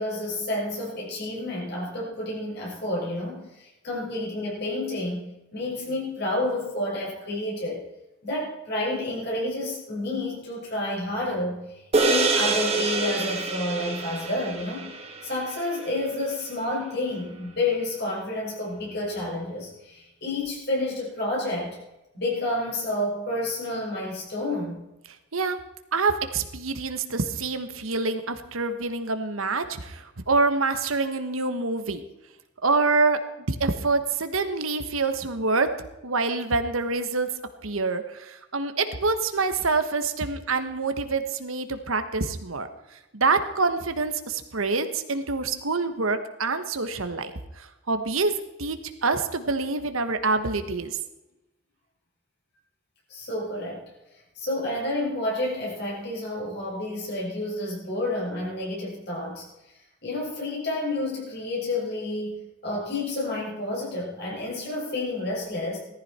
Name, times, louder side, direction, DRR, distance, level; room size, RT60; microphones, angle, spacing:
voice 1, 0.0-7.8 8.2-11.6 12.0-14.9 15.2-21.8 22.1-24.8 53.1-53.9 54.4-59.4 60.0-62.4 62.6-65.8, left 1 dB, 55° left, -3 dB, 5.9 m, -30 dB
sound 1, 11.9-16.5, right 3 dB, 30° right, 1.8 m, -27 dB
voice 2, 25.9-32.0 32.6-33.2 33.5-35.7 36.0-37.3 37.6-48.3 48.6-51.0, right 3 dB, 85° right, 8 dB, 1.3 m, -26 dB
18.0 x 14.0 x 4.4 m, 0.96 s
head